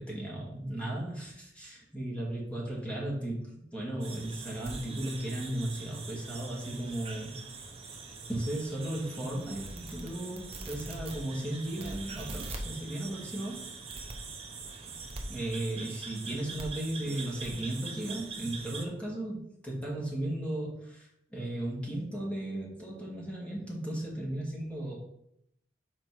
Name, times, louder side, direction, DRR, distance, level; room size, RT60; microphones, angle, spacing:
voice 1, 0.0-7.3 8.3-13.6 14.8-15.0 15.3-25.0, right 1 dB, 5° left, -4 dB, 2.1 m, -36 dB
sound 1, 4.0-18.8, right 3 dB, 35° right, 0.8 m, -42 dB
6.0 x 4.7 x 4.6 m, 0.76 s
head